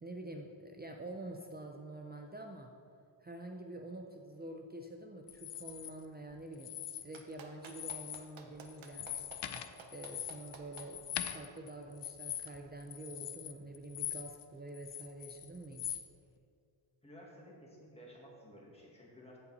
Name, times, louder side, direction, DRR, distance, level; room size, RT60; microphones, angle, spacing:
voice 1, 0.0-2.7 3.2-6.7 7.0-9.1 9.9-16.0, right 2 dB, 20° right, 2 dB, 0.5 m, -47 dB
sound 1, 5.3-5.9 6.5-7.3 7.6-8.3 8.6-14.4 14.7-16.0, left 11 dB, 60° left, 0.6 m, -42 dB
Clapping, 7.1-10.9 12.4-12.5, right 6 dB, 70° right, 1.0 m, -52 dB
voice 2, 17.0-19.4, equal, 10° left, -4 dB, 2.0 m, -54 dB
15.0 x 5.5 x 4.1 m, 2.3 s
wide cardioid pair, 150°, 48 cm